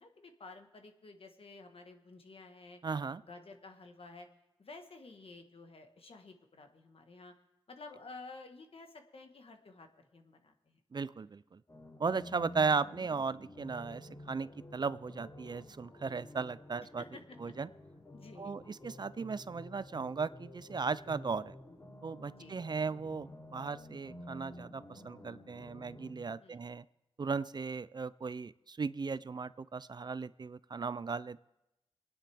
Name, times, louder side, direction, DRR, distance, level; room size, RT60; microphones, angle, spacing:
voice 1, 0.0-2.8 3.3-4.3 4.6-7.3 7.7-10.8 17.0-17.5 18.1-18.5 22.4-22.5 26.4-26.6, left 3 dB, 65° left, 5 dB, 1.4 m, -52 dB
voice 2, 2.8-3.2 10.9-11.6 12.0-17.0 17.4-17.7 18.4-21.6 22.0-26.9 27.2-31.4, right 5 dB, 45° right, 17 dB, 0.4 m, -36 dB
sound 1, 11.7-26.1, left 1 dB, 35° left, 6.3 m, -51 dB
27.0 x 9.9 x 3.5 m, 0.93 s
wide cardioid pair, 65°, 10 cm